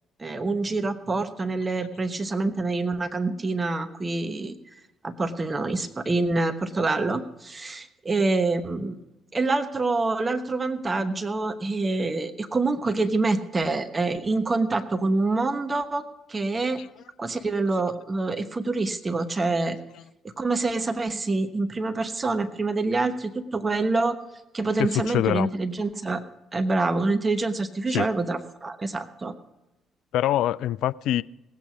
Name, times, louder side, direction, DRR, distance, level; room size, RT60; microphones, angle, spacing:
voice 1, 0.2-4.5 5.0-9.0 9.3-16.8 17.2-19.8 20.4-24.2 24.5-26.2 26.5-29.3, right 3 dB, 25° right, 1.1 m, -26 dB
voice 2, 24.8-25.5 27.9-28.1 30.1-31.2, left 13 dB, 60° left, 0.3 m, -24 dB
18.5 x 8.3 x 5.1 m
figure-of-eight pair, 45°, 0 cm